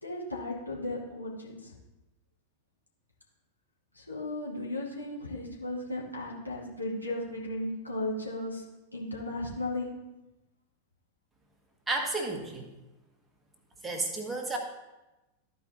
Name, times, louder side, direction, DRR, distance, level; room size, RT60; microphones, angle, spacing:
voice 1, 0.0-1.7 3.9-8.6 8.9-9.9, left 1 dB, 85° left, -5 dB, 2.3 m, -35 dB
voice 2, 11.9-12.6 13.8-14.6, right 2 dB, 10° right, 2 dB, 1.5 m, -32 dB
13.5 x 5.0 x 4.2 m, 1.0 s
figure-of-eight pair, 90°, 0 cm